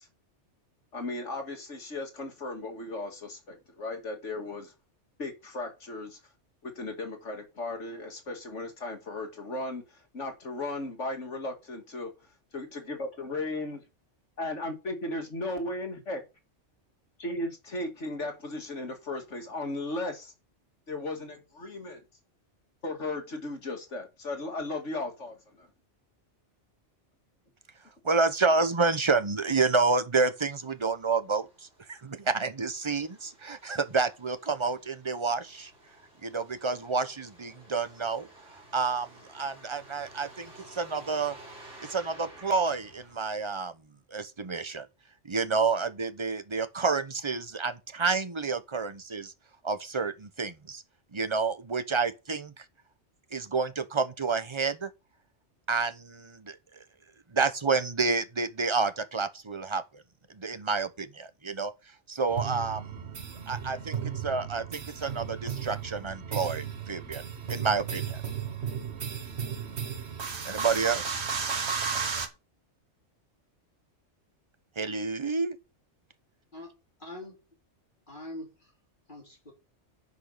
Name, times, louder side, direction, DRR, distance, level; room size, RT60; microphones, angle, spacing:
voice 1, 0.9-4.7 5.2-6.2 6.6-12.1 12.5-13.8 14.4-16.2 17.2-20.3 20.9-22.0 22.8-25.7, left 2 dB, 80° left, 2.8 m, -36 dB
voice 2, 28.0-31.5 31.9-35.7 36.2-41.4 41.8-43.7 44.1-44.9 45.2-49.3 49.6-50.8 51.1-52.6 53.3-54.9 55.7-56.6 57.3-60.0 60.3-61.7 62.1-63.2 63.5-67.2 67.5-68.2 70.4-71.2 74.8-75.6, right 4 dB, 25° right, 0.9 m, -29 dB
Truck, 30.3-43.2, right 2 dB, 85° right, 3.9 m, -53 dB
sound 1, 62.3-72.3, right 6 dB, 65° right, 1.5 m, -34 dB
voice 3, 76.5-77.4 78.1-78.7 79.1-79.5, left 1 dB, 45° left, 3.6 m, -44 dB
10.0 x 5.6 x 6.6 m
omnidirectional pair, 1.2 m